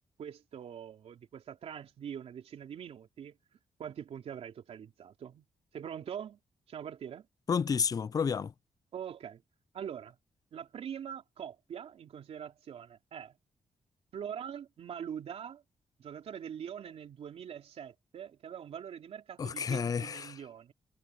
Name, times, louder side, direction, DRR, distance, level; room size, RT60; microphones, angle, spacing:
voice 1, 0.2-3.4 3.8-5.4 5.7-6.4 6.7-7.3 8.9-9.4 9.7-10.2 10.5-13.3 14.1-15.6 16.0-20.7, right 8 dB, 75° right, 3.2 m, -43 dB
voice 2, 7.5-8.5 19.4-20.4, left 6 dB, 35° left, 0.4 m, -31 dB
cardioid pair, 85°, 11 cm